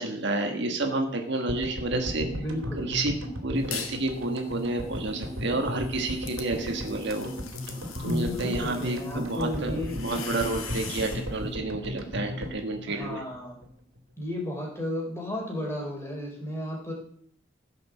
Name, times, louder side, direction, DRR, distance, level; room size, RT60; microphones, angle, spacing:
voice 1, 0.0-2.3 2.8-3.2 3.4-7.3 8.0-13.2, right 2 dB, 55° right, 4 dB, 1.6 m, -30 dB
sound 1, 1.5-13.7 14.0-14.1 14.2-14.3, equal, 80° right, 2.8 m, -36 dB
voice 2, 2.3-2.9 8.0-10.0 12.9-13.6 14.2-16.9, left 1 dB, 15° left, 0 dB, 3.7 m, -33 dB
sound 2, 3.5-4.1 4.5-11.3, left 6 dB, 90° left, 2.0 m, -42 dB
16.0 x 6.1 x 7.3 m, 0.63 s
head